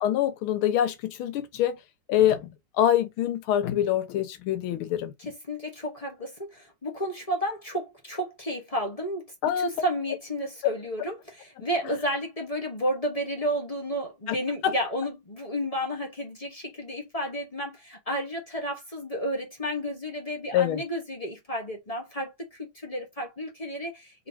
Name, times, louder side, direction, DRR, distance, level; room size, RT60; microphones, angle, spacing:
voice 1, 0.0-1.8 2.1-5.1 9.4-9.7 14.3-14.4 14.6-14.7 20.5-20.8, left 11 dB, 85° left, 1.6 m, -25 dB
voice 2, 5.2-24.3, equal, 25° left, 0.8 m, -32 dB
4.0 x 3.0 x 2.7 m
omnidirectional pair, 2.3 m